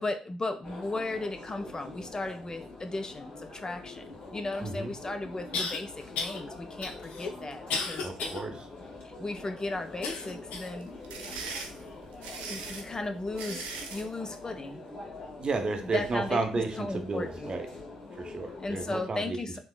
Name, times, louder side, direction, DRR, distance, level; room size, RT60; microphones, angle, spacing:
voice 1, 0.0-4.0 4.3-8.6 9.0-10.9 12.4-14.8 15.9-16.4 16.8-17.6 18.6-19.6, left 2 dB, 30° left, 6 dB, 0.5 m, -36 dB
sound 1, 0.6-19.0, left 2 dB, 55° left, 1.8 m, -45 dB
sound 2, 4.5-4.6 5.5-5.8 6.1-6.4 6.8-8.4 8.9-9.0 10.0-10.8 11.3-11.5 12.2-12.3, left 4 dB, 75° left, 0.7 m, -34 dB
voice 2, 4.6-4.9 8.0-8.6 15.4-17.7 18.1-19.4, right 3 dB, 40° right, 5 dB, 0.7 m, -32 dB
sound 3, 10.8-14.1, right 4 dB, 80° right, 0.5 m, -40 dB
3.5 x 2.8 x 2.3 m, 0.35 s
hypercardioid pair, 45°, 2 cm